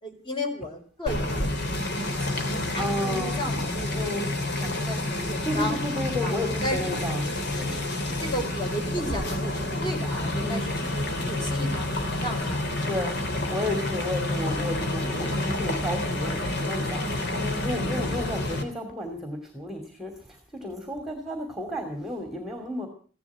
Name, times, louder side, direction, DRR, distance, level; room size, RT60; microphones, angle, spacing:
voice 1, 0.0-1.6 1.9-4.1 4.6-5.8 6.2-6.9 7.7-12.7 15.2-15.7 17.1-18.1, equal, 20° left, 3 dB, 4.3 m, -35 dB
sound 1, 1.1-18.6, left 1 dB, 50° left, 3.1 m, -29 dB
voice 2, 2.8-3.4 3.9-4.3 5.4-7.2 7.5-7.8 10.4-10.7 12.9-13.1 13.5-22.9, left 1 dB, ahead, 5 dB, 2.7 m, -32 dB
16.0 x 12.0 x 7.4 m, 0.41 s
head